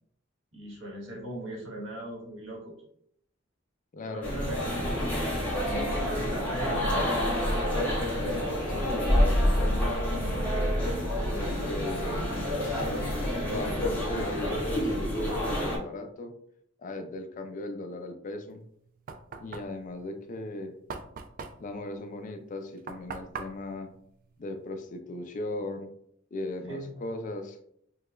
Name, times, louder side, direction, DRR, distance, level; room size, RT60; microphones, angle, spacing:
voice 1, 0.5-2.8 4.1-7.4 26.6-26.9, right 1 dB, 85° right, -2 dB, 1.3 m, -40 dB
voice 2, 3.9-4.4 8.7-10.3 11.2-12.3 12.6-12.8 13.4-16.3 16.8-18.6 19.4-20.7 21.6-23.9 24.4-25.9 26.3-27.6, left 2 dB, 40° left, 6 dB, 0.4 m, -37 dB
sound 1, 4.2-15.8, equal, 10° left, 1.3 m, -28 dB
Knock, 18.5-25.0, right 5 dB, 45° right, 0.3 m, -43 dB
4.6 x 2.3 x 2.4 m, 0.69 s
head